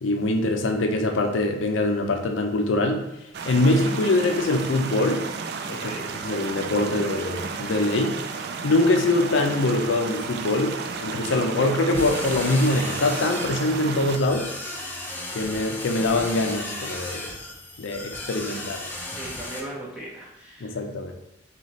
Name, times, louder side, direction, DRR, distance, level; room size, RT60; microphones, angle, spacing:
voice 1, 0.0-3.0 3.4-5.2 5.7-5.9 6.2-14.5 15.3-17.4 17.8-18.8 20.6-21.1, left 2 dB, 80° left, 4 dB, 0.5 m, -23 dB
sound 1, 3.3-14.2, right 5 dB, 55° right, 0.3 m, -33 dB
voice 2, 5.7-6.0 19.1-20.8, right 1 dB, 5° right, -6 dB, 0.9 m, -38 dB
sound 2, 11.9-19.6, left 1 dB, 10° left, 0.4 m, -35 dB
4.0 x 3.0 x 3.0 m, 0.88 s
head